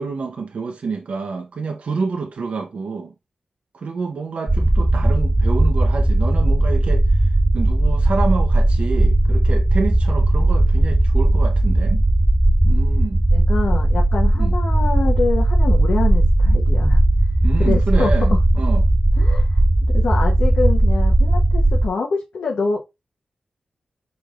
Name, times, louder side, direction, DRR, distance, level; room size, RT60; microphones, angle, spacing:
voice 1, 0.0-3.1 3.7-12.0 12.6-13.2 14.4-14.6 17.4-18.8, right 4 dB, 70° right, 0.6 m, -28 dB
sound 1, 4.5-21.9, right 1 dB, 15° right, 0.3 m, -17 dB
voice 2, 13.3-17.0 17.6-18.4 19.2-19.6 19.9-22.8, left 4 dB, 90° left, 0.8 m, -25 dB
4.9 x 3.9 x 2.4 m
cardioid pair, 75°, 2 cm